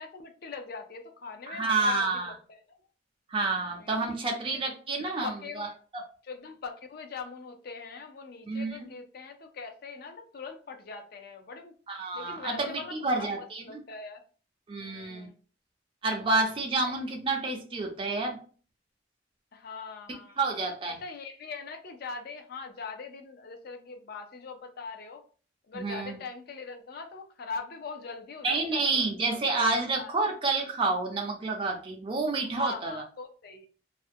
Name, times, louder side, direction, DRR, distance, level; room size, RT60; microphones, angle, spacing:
voice 1, 0.0-2.6 3.8-4.4 5.0-5.7 6.2-11.7 12.1-14.2 14.8-15.3 19.5-20.5 21.0-25.2 25.7-29.0 30.0-30.1 32.5-33.7, left 4 dB, 55° left, 5 dB, 0.4 m, -41 dB
voice 2, 1.5-2.3 3.3-5.7 5.9-6.0 8.5-8.9 11.9-13.6 14.7-15.3 16.0-18.4 20.4-21.0 25.7-26.2 28.4-32.9, right 3 dB, 30° right, 1 dB, 0.4 m, -29 dB
2.4 x 2.1 x 2.5 m, 0.39 s
head